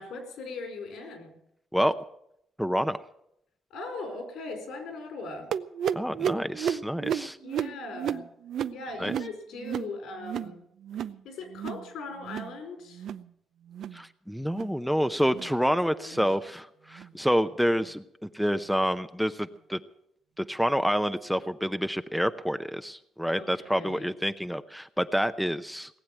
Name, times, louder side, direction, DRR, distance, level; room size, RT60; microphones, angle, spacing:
voice 1, 0.0-1.3 3.7-5.5 7.4-8.3 8.7-10.6 11.2-13.1 15.6-16.2 23.3-24.1, left 3 dB, 80° left, 5 dB, 4.6 m, -39 dB
voice 2, 2.6-3.0 5.9-7.4 9.0-9.1 13.9-19.8 20.4-26.0, equal, ahead, 10 dB, 0.6 m, -28 dB
sound 1, 5.5-10.6 10.8-11.2 11.5-11.9 12.2-12.6 12.9-13.3 13.7-14.0 14.5-14.7 15.3-15.5 16.1-16.3 16.9-17.1 17.8-17.9 18.7-18.8, right 8 dB, 70° right, 0.5 m, -33 dB
18.5 x 7.8 x 9.0 m, 0.77 s
cardioid pair, 90°, 0 cm